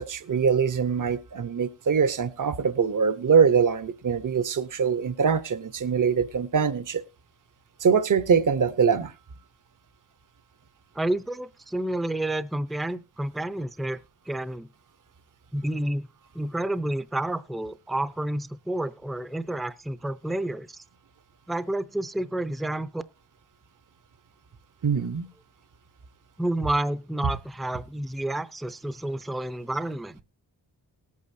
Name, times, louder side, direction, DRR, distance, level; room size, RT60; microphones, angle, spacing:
voice 1, 0.0-7.0 7.8-9.1 24.8-25.3, right 6 dB, 50° right, 0.8 m, -23 dB
voice 2, 10.9-14.0 14.3-14.7 15.5-16.1 16.3-20.8 21.5-23.0 26.4-30.2, right 1 dB, ahead, 0.5 m, -30 dB
19.0 x 8.5 x 2.7 m
wide cardioid pair, 125°, 41 cm